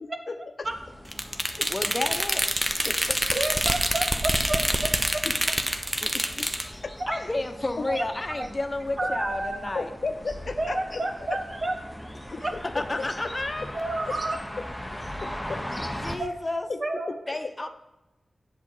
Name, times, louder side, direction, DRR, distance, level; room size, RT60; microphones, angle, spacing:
voice 1, 0.3-0.7 1.6-1.7 2.8-3.2 5.2-5.3 6.0-6.5 6.8-6.9 9.0-9.1 9.7-11.0 11.3-11.4 12.3-13.1 14.1-14.2 15.2-15.6 16.7-16.8 17.1-17.4, left 4 dB, 65° left, 8 dB, 0.7 m, -34 dB
sound 1, 0.6-16.2, equal, 5° left, 1.1 m, -40 dB
sound 2, 1.1-6.7, right 1 dB, 20° right, 1.0 m, -26 dB
voice 2, 1.7-2.5 7.1-9.9 12.2-12.5 12.7-14.6 15.9-16.7 17.3-17.7, left 2 dB, 35° left, 7 dB, 1.0 m, -32 dB
voice 3, 3.3-4.6 7.0-7.2 7.9-8.0 9.0-9.6 10.6-11.8 12.4-12.5 13.7-14.4 16.2-16.3 16.8-17.1, right 2 dB, 50° right, 5 dB, 1.3 m, -29 dB
8.1 x 7.5 x 4.9 m, 0.95 s
cardioid pair, 50°, 0 cm